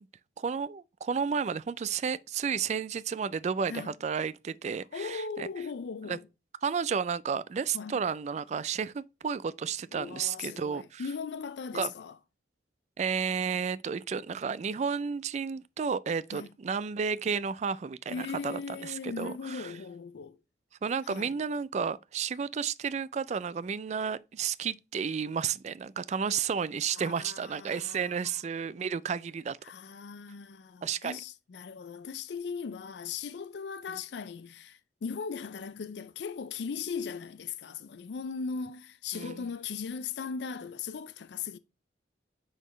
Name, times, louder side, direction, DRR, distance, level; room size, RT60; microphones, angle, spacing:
voice 1, 0.4-5.5 6.1-6.2 6.6-11.0 11.7-11.9 13.0-19.7 20.8-29.6 30.8-31.2 39.1-39.4, right 6 dB, 40° right, 0.3 m, -32 dB
voice 2, 4.9-6.3 7.7-8.0 9.9-12.2 16.3-16.5 18.1-20.4 21.0-21.4 26.9-28.4 29.6-41.6, left 5 dB, 70° left, 0.4 m, -38 dB
9.0 x 4.0 x 3.1 m
head